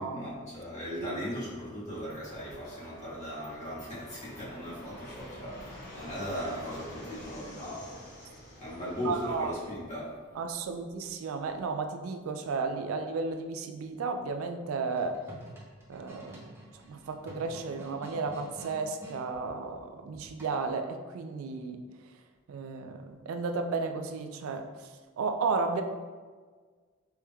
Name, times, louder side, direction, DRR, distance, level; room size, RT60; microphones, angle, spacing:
voice 1, 0.0-7.9 8.6-10.1, equal, 35° left, -9 dB, 1.5 m, -38 dB
voice 2, 0.9-1.2 9.0-9.5 10.4-15.2 15.9-16.5 16.9-21.8 22.5-24.7 25.2-25.8, right 4 dB, 85° right, 6 dB, 0.4 m, -33 dB
Fixed-wing aircraft airplane, 2.1-9.7, equal, 55° left, 1.0 m, -47 dB
sound 1, 14.9-19.2 20.4-20.8, right 1 dB, 10° right, 0.7 m, -48 dB
4.3 x 3.4 x 2.3 m, 1.5 s
head